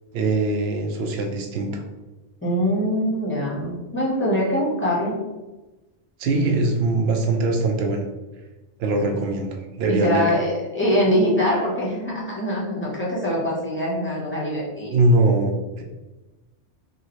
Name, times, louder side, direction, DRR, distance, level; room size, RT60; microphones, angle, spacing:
voice 1, 0.1-1.8 6.2-8.0 8.8-10.3 14.9-15.8, right 2 dB, 65° right, 3 dB, 0.8 m, -22 dB
voice 2, 2.4-5.1 9.9-14.9, equal, 10° left, -6 dB, 0.8 m, -23 dB
2.9 x 2.8 x 2.9 m, 1.1 s
omnidirectional pair, 1.3 m